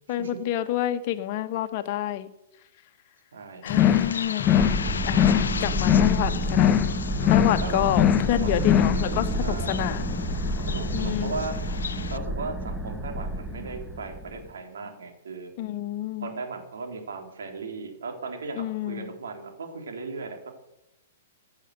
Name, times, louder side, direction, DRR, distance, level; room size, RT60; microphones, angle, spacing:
voice 1, 0.1-2.3 3.6-4.5 5.0-5.3 5.6-6.8 7.3-10.2 10.9-11.3 15.6-16.3 18.6-19.1, left 12 dB, 40° left, 10 dB, 1.4 m, -28 dB
voice 2, 3.3-4.2 7.6-8.0 8.3-9.9 10.7-11.6 12.1-15.5 16.2-20.5, right 4 dB, 65° right, 3 dB, 3.7 m, -37 dB
Bird, 3.7-12.2, left 6 dB, 70° left, 0.8 m, -36 dB
sound 1, 3.7-4.1 4.4-4.8 5.1-5.5 5.8-6.2 6.5-6.9 7.2-7.6 7.9-8.3 8.6-9.0, left 10 dB, 25° left, 0.7 m, -21 dB
sound 2, 4.6-14.5, equal, ahead, 1.4 m, -30 dB
15.5 x 8.7 x 7.9 m, 0.87 s
figure-of-eight pair, 110°, 0 cm